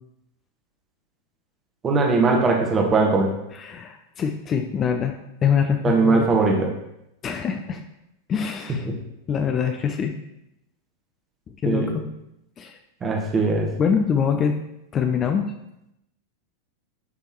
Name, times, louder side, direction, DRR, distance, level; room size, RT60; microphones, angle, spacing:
voice 1, 1.8-3.3 5.8-6.7 11.6-11.9 13.0-13.7, right 3 dB, 20° right, 1 dB, 1.1 m, -20 dB
voice 2, 3.5-5.1 5.4-6.3 7.2-7.8 8.3-8.9 9.3-10.1 11.6-12.0 12.6-12.8 13.8-14.6 14.9-15.5, left 7 dB, 25° left, 5 dB, 0.5 m, -24 dB
9.7 x 3.4 x 3.1 m, 0.84 s
figure-of-eight pair, 90°, 0 cm